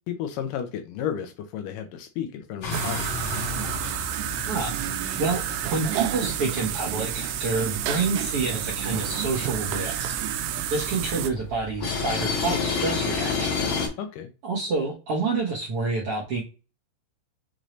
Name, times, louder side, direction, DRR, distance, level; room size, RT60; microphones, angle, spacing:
voice 1, 0.1-3.2 14.0-14.3, left 9 dB, 80° left, 7 dB, 2.1 m, -33 dB
sound 1, 2.6-13.9, left 4 dB, 60° left, 2.2 m, -32 dB
sound 2, 2.7-11.3, right 11 dB, 90° right, 2.4 m, -30 dB
voice 2, 5.2-10.2 10.7-13.6 14.4-16.4, right 3 dB, 60° right, -4 dB, 1.5 m, -28 dB
6.3 x 2.6 x 3.1 m, 0.31 s
omnidirectional pair, 4.1 m